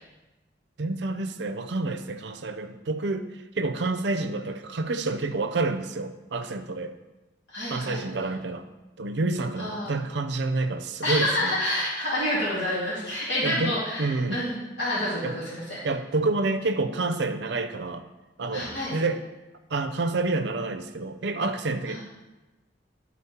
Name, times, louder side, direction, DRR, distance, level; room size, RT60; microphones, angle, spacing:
voice 1, 0.8-3.3 3.6-6.9 7.6-8.7 9.0-11.5 13.4-13.7 14.0-14.4 15.2-15.3 15.8-18.1 18.4-19.2 19.7-22.0, right 3 dB, 70° right, 8 dB, 0.6 m, -28 dB
voice 2, 7.5-8.0 9.6-9.9 11.0-15.8 18.5-19.0 21.9-22.0, left 1 dB, 70° left, -9 dB, 2.3 m, -28 dB
11.0 x 4.2 x 4.3 m, 1.1 s
head